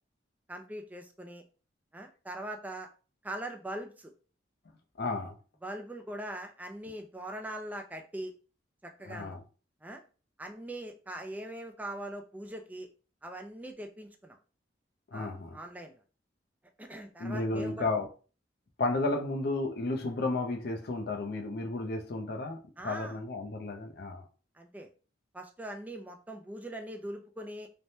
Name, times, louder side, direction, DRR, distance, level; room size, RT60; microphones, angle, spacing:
voice 1, 0.5-1.4 1.9-2.9 3.2-4.1 5.6-8.3 8.8-9.4 9.8-10.0 10.4-12.9 13.2-14.4 15.1-15.9 16.8-17.9 22.8-23.2 24.6-24.9 25.3-27.7, right 1 dB, 10° right, 0.3 m, -41 dB
voice 2, 5.0-5.3 9.0-9.4 15.1-15.6 17.2-18.1 18.8-24.3, left 2 dB, 60° left, 0.5 m, -33 dB
3.2 x 2.1 x 2.7 m
head